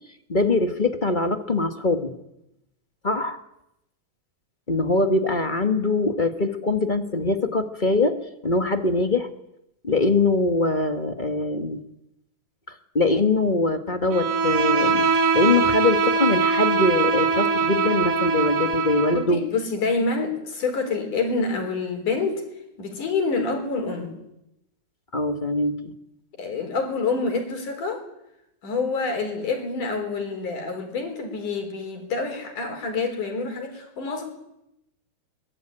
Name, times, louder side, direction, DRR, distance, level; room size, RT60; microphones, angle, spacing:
voice 1, 0.3-2.1 3.0-3.4 4.7-8.2 8.4-9.3 9.8-11.8 12.7-19.4 25.1-25.9, left 3 dB, 30° left, 7 dB, 0.9 m, -23 dB
Bowed string instrument, 14.1-19.3, right 5 dB, 60° right, 2.7 m, -22 dB
voice 2, 19.1-22.4 22.8-24.2 26.4-28.0 28.6-34.2, left 4 dB, 85° left, 4 dB, 6.1 m, -27 dB
23.0 x 22.5 x 9.1 m, 0.86 s
omnidirectional pair, 3.5 m